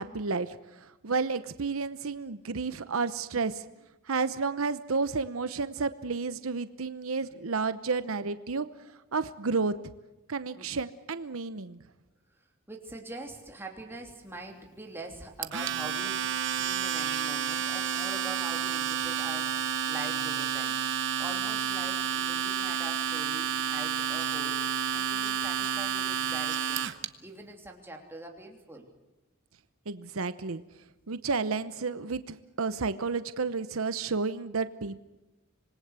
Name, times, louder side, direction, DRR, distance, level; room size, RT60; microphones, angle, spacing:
voice 1, 0.0-3.7 4.1-8.7 9.1-9.7 10.3-11.8 29.9-30.6 31.1-35.0, right 4 dB, 80° right, 12 dB, 0.9 m, -31 dB
voice 2, 12.7-20.8 21.2-26.8 27.2-28.9, right 2 dB, 10° right, 1 dB, 3.1 m, -44 dB
Domestic sounds home sounds, 15.4-27.1, right 8 dB, 60° right, 1.1 m, -30 dB
26.0 x 20.5 x 8.2 m, 1.0 s
head